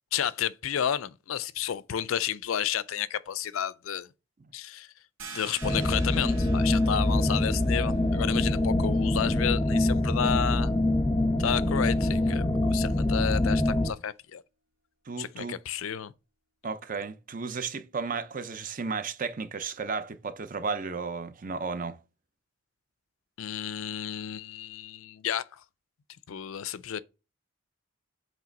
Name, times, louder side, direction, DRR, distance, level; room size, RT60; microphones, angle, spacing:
voice 1, 0.1-4.1 4.5-4.9 5.3-10.7 11.4-14.4 15.2-16.1 23.4-25.6 26.3-27.0, left 9 dB, 80° left, 0.4 m, -31 dB
sound 1, 5.2-10.6, right 4 dB, 85° right, 2.2 m, -48 dB
sound 2, 5.6-13.9, left 1 dB, 15° left, 0.7 m, -25 dB
voice 2, 15.1-15.6 16.6-22.0, right 4 dB, 40° right, 0.6 m, -34 dB
7.5 x 3.2 x 5.2 m
head